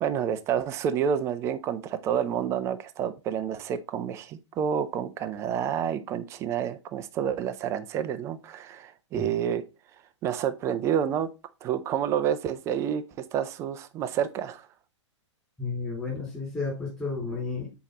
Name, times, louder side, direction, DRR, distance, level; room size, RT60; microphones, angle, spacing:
voice 1, 0.0-9.6 10.2-11.3 11.6-13.0 13.3-14.7, right 8 dB, 20° right, 0.4 m, -29 dB
voice 2, 15.6-17.7, left 4 dB, 10° left, 4.1 m, -32 dB
7.3 x 4.7 x 4.1 m
figure-of-eight pair, 110°, 16 cm